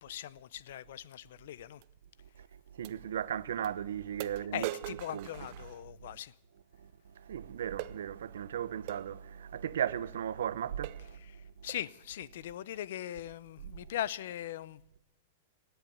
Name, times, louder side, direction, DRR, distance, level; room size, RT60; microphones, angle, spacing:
voice 1, 0.0-1.8 4.5-6.3 11.2-15.0, left 12 dB, 60° left, 0.5 m, -40 dB
sound 1, 1.8-1.9 2.8-3.0 3.6-3.7 4.2-6.2 7.8-8.0 8.9-9.1 9.9-10.0 10.4-10.5 10.8-11.1 11.7-11.9, right 17 dB, 40° right, 0.5 m, -42 dB
voice 2, 2.7-4.7 5.1-5.3 6.8-6.9 7.2-11.2, right 9 dB, 90° right, 0.7 m, -36 dB
17.5 x 8.0 x 8.5 m
supercardioid pair, 170°, 0 cm